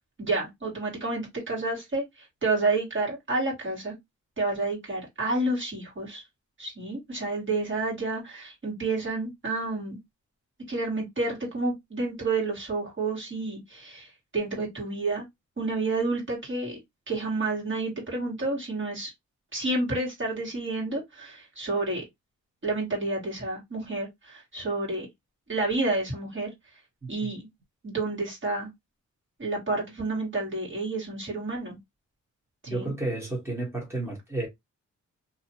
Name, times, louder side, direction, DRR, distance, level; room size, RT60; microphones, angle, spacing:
voice 1, 0.2-2.0 2.4-3.9 4.4-6.2 6.6-10.0 10.7-15.2 15.6-16.8 17.1-19.1 19.5-22.0 22.6-25.1 25.5-26.5 27.1-27.5 27.8-28.7 29.4-31.8 32.6-32.9, right 3 dB, 40° right, 1.7 m, -30 dB
voice 2, 32.7-34.5, right 2 dB, 10° right, 1.4 m, -31 dB
2.7 x 2.5 x 2.9 m
cardioid pair, 85°, 31 cm